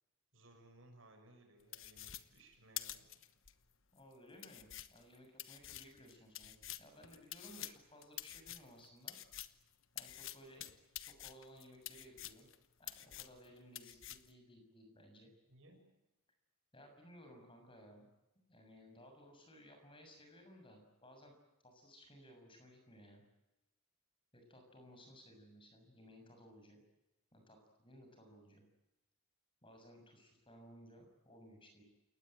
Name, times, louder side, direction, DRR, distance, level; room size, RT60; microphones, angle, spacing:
voice 1, 0.3-3.1 15.5-15.8, right 1 dB, 60° right, 4 dB, 6.8 m, -62 dB
sound 1, 1.7-3.5 4.0-4.1 4.4-9.6 10.0-12.6 12.8-13.5 13.8-14.3, left 13 dB, 60° left, 1.2 m, -48 dB
voice 2, 3.9-9.2 9.9-10.7 11.0-12.5 12.8-15.3 16.7-18.1 18.3-21.3 21.6-23.2 24.3-26.8 27.3-28.6 29.6-31.8, equal, 25° left, 4 dB, 6.8 m, -59 dB
29.0 x 19.0 x 9.1 m, 0.98 s
head